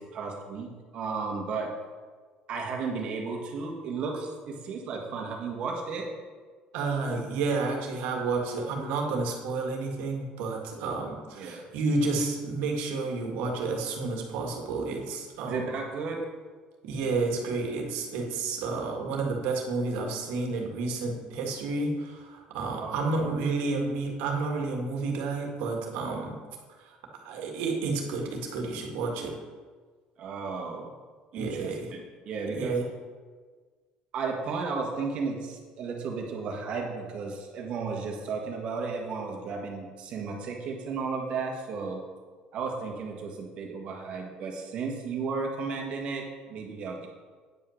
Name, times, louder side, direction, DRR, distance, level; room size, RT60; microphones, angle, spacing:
voice 1, 0.0-1.7 2.5-6.1 11.3-11.6 15.4-16.2 22.8-23.3 30.2-30.9 31.3-32.8 34.1-42.0 42.5-47.1, right 4 dB, 40° right, 1 dB, 1.6 m, -34 dB
voice 2, 6.7-15.6 16.8-26.4 26.9-27.0 27.2-29.4 31.3-31.9 32.5-32.9, right 3 dB, 80° right, 1 dB, 1.8 m, -30 dB
9.4 x 5.6 x 6.4 m, 1.5 s
cardioid pair, 180°, 3 cm